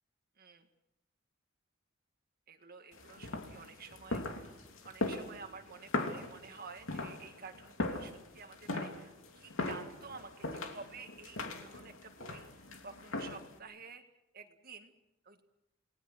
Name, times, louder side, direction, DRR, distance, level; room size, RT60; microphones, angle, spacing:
voice 1, 0.4-0.7 2.5-4.6 4.8-14.0 14.3-14.9 15.2-15.4, right 5 dB, 50° right, 6 dB, 1.7 m, -51 dB
sound 1, 2.9-13.6, left 2 dB, 85° left, 2.9 m, -40 dB
29.0 x 19.5 x 6.4 m, 0.85 s
head